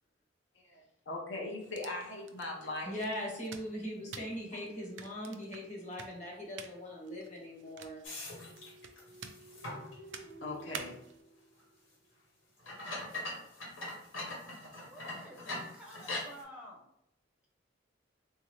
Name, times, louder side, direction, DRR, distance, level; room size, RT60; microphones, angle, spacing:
voice 1, 0.6-2.9 10.4-11.0, left 2 dB, 65° left, -1 dB, 0.7 m, -40 dB
sound 1, 1.6-11.2, right 6 dB, 65° right, 0.4 m, -51 dB
voice 2, 2.8-8.0, equal, 40° left, -2 dB, 1.2 m, -40 dB
sound 2, 8.0-10.0 10.5-10.6 11.6-11.7 12.6-16.4, left 2 dB, 85° left, 1.3 m, -42 dB
sound 3, 8.3-12.1, right 1 dB, 80° right, 0.8 m, -54 dB
voice 3, 14.9-16.9, equal, 5° right, -2 dB, 0.6 m, -51 dB
3.6 x 2.7 x 3.1 m, 0.79 s
head